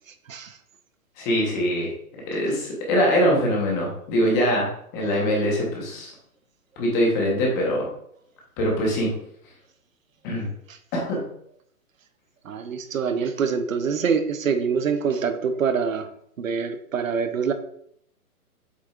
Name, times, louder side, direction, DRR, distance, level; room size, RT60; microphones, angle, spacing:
voice 1, 1.2-1.9 2.3-6.1 6.8-7.9 8.6-9.1 10.2-10.5 10.9-11.2, equal, 15° left, -1 dB, 1.0 m, -23 dB
voice 2, 12.4-16.1 16.4-17.5, right 6 dB, 60° right, 9 dB, 0.8 m, -25 dB
7.6 x 6.1 x 2.4 m, 0.69 s
hypercardioid pair, 165°, 45 cm